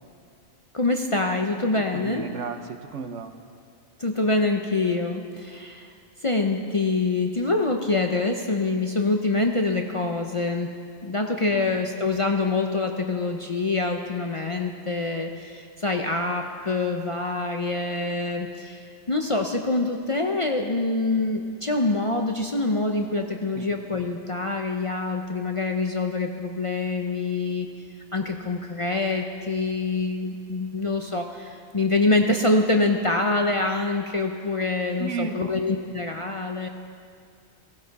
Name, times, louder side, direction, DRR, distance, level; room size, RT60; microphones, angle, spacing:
voice 1, 0.7-2.3 4.0-5.9 6.2-10.7 11.0-27.7 28.1-36.7, left 3 dB, 35° left, 3 dB, 0.5 m, -25 dB
voice 2, 1.8-3.3 11.5-11.7 23.5-23.7 35.0-35.6 36.6-36.7, right 5 dB, 70° right, 8 dB, 1.1 m, -34 dB
18.0 x 15.0 x 4.1 m, 2.3 s
omnidirectional pair, 1.3 m